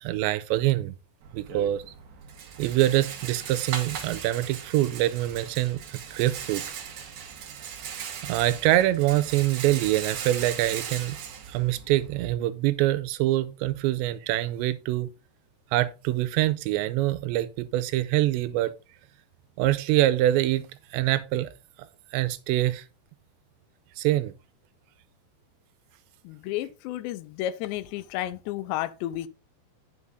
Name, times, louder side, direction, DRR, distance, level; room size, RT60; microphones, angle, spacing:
voice 1, 0.0-0.9 1.3-1.8 2.6-6.6 8.2-11.2 11.5-15.1 15.7-18.7 19.6-21.5 22.1-22.8 24.0-24.3, right 15 dB, 90° right, 2.9 m, -25 dB
Rattle, 1.2-12.3, right 7 dB, 60° right, 2.0 m, -38 dB
voice 2, 26.3-29.3, left 13 dB, 85° left, 2.8 m, -32 dB
9.7 x 6.1 x 3.7 m
omnidirectional pair, 5.1 m